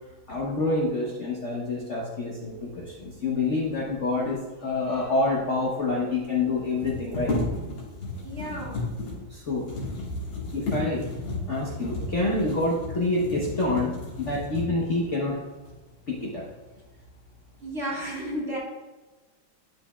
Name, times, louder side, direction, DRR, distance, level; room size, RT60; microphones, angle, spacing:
voice 1, 0.3-7.4 9.3-9.6 10.5-11.0 11.5-13.9 14.2-15.4 16.1-16.5, left 2 dB, 45° left, -4 dB, 1.0 m, -27 dB
sound 1, 5.2-5.3 5.4-5.5 6.6-15.0 15.6-15.8 16.2-16.8 17.2-17.7, left 2 dB, 75° left, 2.5 m, -33 dB
voice 2, 8.2-8.8 17.6-18.6, equal, 35° right, -4 dB, 1.7 m, -32 dB
11.0 x 5.1 x 2.3 m, 1.2 s
omnidirectional pair, 2.2 m